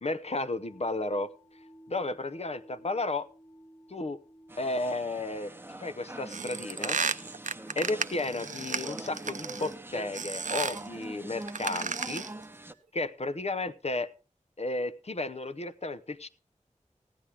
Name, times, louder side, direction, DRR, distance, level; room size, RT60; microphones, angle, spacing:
voice 1, 0.0-1.3 1.9-3.3 3.9-4.2 4.6-7.0 7.8-12.3 12.9-14.1 14.6-16.3, left 2 dB, 55° left, 13 dB, 0.7 m, -33 dB
sound 1, 0.6-9.3, right 1 dB, 75° left, 1.8 m, -57 dB
sound 2, 4.5-12.7, right 1 dB, 15° right, 0.9 m, -44 dB
sound 3, 6.3-9.7 10.1-10.9 11.4-12.4, right 5 dB, 70° right, 0.5 m, -33 dB
15.5 x 9.9 x 3.4 m, 0.33 s
wide cardioid pair, 45°, 13 cm